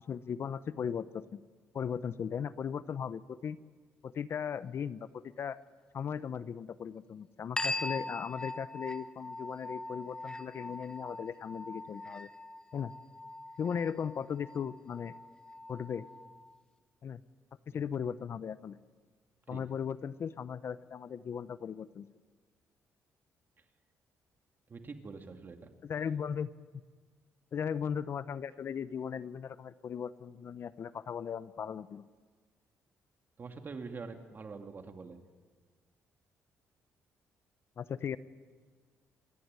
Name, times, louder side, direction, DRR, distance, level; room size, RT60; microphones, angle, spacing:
voice 1, 0.0-1.4 1.7-3.6 4.0-5.6 5.9-12.3 12.7-12.9 13.6-15.1 15.7-16.1 17.0-17.2 17.7-18.8 19.5-22.1 25.8-26.5 27.5-32.0 37.8-38.2, left 7 dB, 50° left, 16 dB, 0.6 m, -37 dB
sound 1, 7.6-16.6, left 2 dB, 15° left, 0.9 m, -41 dB
voice 2, 24.7-25.7 33.4-35.2, right 4 dB, 40° right, 5 dB, 2.2 m, -45 dB
27.0 x 11.5 x 9.6 m, 1.5 s
cardioid pair, 100°, 5 cm